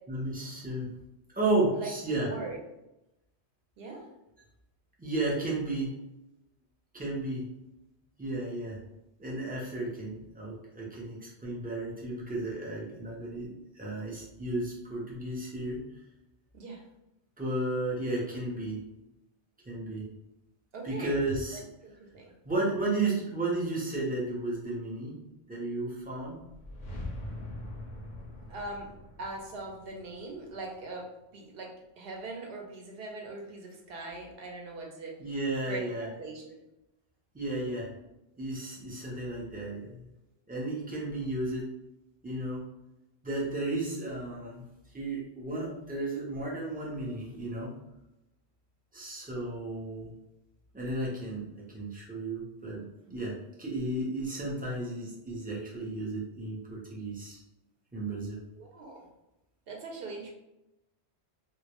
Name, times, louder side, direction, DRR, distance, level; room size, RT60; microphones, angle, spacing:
voice 1, 0.1-0.9 1.3-2.3 5.0-6.0 6.9-7.5 8.2-8.8 9.2-15.8 17.4-18.8 19.7-20.1 20.8-21.7 22.4-25.2 25.5-26.4 35.2-36.1 37.3-37.9 38.4-40.1 40.5-41.7 42.2-42.6 43.2-44.7 44.9-47.7 48.9-50.1 50.7-57.4 57.9-58.4, right 2 dB, 15° right, -5 dB, 0.3 m, -33 dB
voice 2, 2.2-2.6 3.8-4.1 16.5-16.8 20.7-21.2 21.8-22.3 28.5-28.9 29.2-31.1 31.3-35.1 35.7-35.8 36.2-36.6 58.6-59.1 59.7-60.3, right 3 dB, 65° right, 0 dB, 0.7 m, -41 dB
sound 1, 26.4-31.2, left 1 dB, 55° left, 0.6 m, -43 dB
2.2 x 2.0 x 2.8 m, 0.91 s
omnidirectional pair, 1.1 m